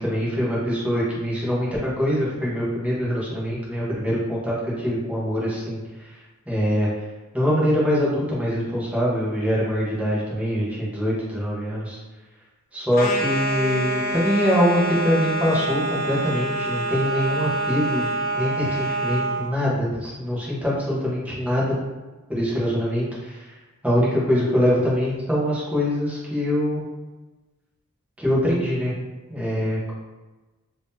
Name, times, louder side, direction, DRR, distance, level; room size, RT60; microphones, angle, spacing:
voice 1, 0.0-7.1 7.3-12.0 12.7-18.1 18.3-21.7 22.3-23.6 23.8-26.8 28.2-28.9 29.3-29.9, equal, 5° right, -7 dB, 1.0 m, -24 dB
sound 1, 12.9-19.4, right 1 dB, 45° left, 0.4 m, -26 dB
3.6 x 2.9 x 2.7 m, 1.2 s
head